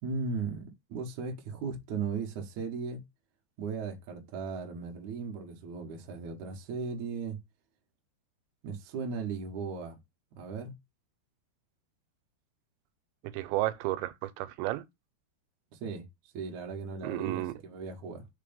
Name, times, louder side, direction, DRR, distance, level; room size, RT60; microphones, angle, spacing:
voice 1, 0.0-3.0 3.6-7.4 8.6-10.0 10.4-10.7 15.8-16.0 16.3-18.3, right 5 dB, 65° right, 2.0 m, -37 dB
voice 2, 13.3-14.8 17.0-17.5, right 16 dB, 90° right, 2.9 m, -32 dB
6.7 x 3.3 x 5.1 m
omnidirectional pair, 5.1 m